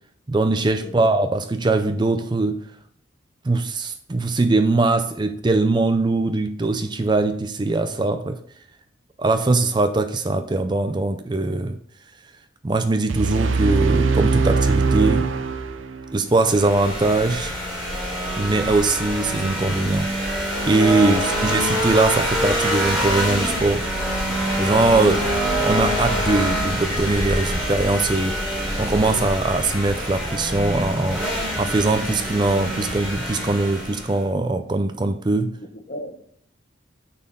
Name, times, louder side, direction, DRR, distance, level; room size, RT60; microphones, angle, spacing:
voice 1, 0.3-2.6 3.4-8.4 9.2-11.8 12.6-15.3 16.1-17.5 18.4-20.1 20.6-23.9 24.6-25.1 25.6-28.4 28.8-31.2 31.6-35.5, right 2 dB, 25° right, 0.4 m, -21 dB
sound 1, 13.1-16.1, right 4 dB, 85° right, 0.6 m, -21 dB
sound 2, 16.3-34.2, equal, 5° right, 3.3 m, -25 dB
voice 2, 21.1-21.6 24.9-25.2 35.7-36.3, equal, 40° left, 0.9 m, -35 dB
9.3 x 4.2 x 5.4 m
head